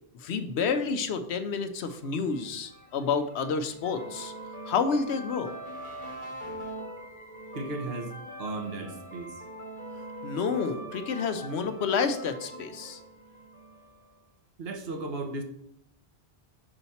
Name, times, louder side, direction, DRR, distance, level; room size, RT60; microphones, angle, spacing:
voice 1, 0.2-4.3 4.7-5.5 10.2-13.0, left 5 dB, 85° left, 9 dB, 1.0 m, -29 dB
sound 1, 2.3-14.0, equal, 50° left, 1.8 m, -42 dB
voice 2, 7.5-9.3 14.6-15.4, right 2 dB, 65° right, 4 dB, 1.2 m, -35 dB
5.6 x 4.1 x 5.6 m, 0.74 s
omnidirectional pair, 1.1 m